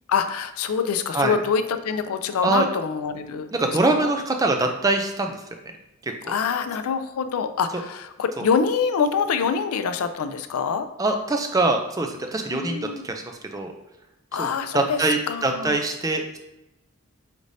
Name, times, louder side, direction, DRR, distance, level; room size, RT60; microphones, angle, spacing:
voice 1, 0.1-4.1 6.3-10.9 12.5-13.1 14.3-15.8, left 6 dB, 85° left, 10 dB, 0.4 m, -25 dB
voice 2, 3.5-5.3 6.0-6.1 11.0-13.2 13.5-13.7 14.4-14.5 14.7-16.4, right 2 dB, 15° right, 4 dB, 0.4 m, -23 dB
5.1 x 3.2 x 2.6 m, 0.94 s
head